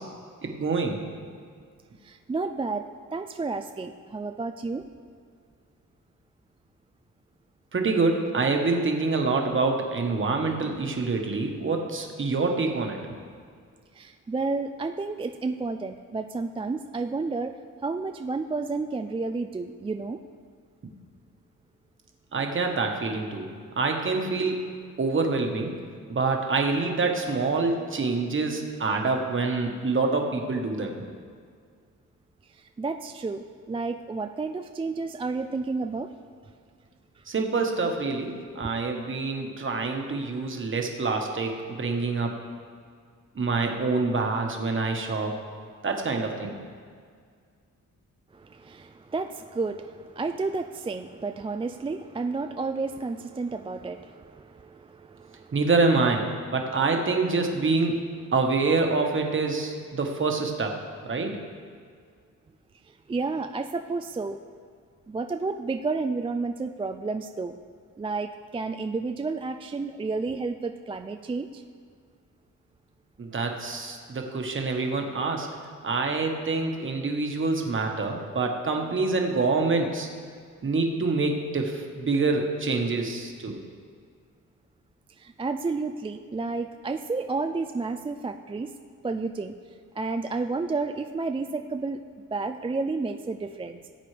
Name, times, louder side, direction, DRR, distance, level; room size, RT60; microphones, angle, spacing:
voice 1, 0.4-1.0 7.7-13.2 22.3-23.5 23.8-24.7 25.0-25.7 26.1-31.0 37.3-42.3 43.3-45.4 45.8-46.5 55.5-56.2 56.5-58.0 58.3-60.7 61.0-61.4 73.2-75.5 75.8-80.1 80.6-83.6, right 3 dB, 40° right, 2 dB, 1.3 m, -26 dB
voice 2, 2.0-2.8 3.1-4.9 14.0-17.5 17.8-20.2 32.8-36.1 48.3-55.6 63.1-64.4 65.1-67.6 68.0-71.6 85.2-88.7 89.0-89.5 90.0-92.0 92.3-93.9, right 3 dB, 20° right, 7 dB, 0.3 m, -31 dB
17.5 x 8.6 x 3.3 m, 2.1 s
wide cardioid pair, 115°, 32 cm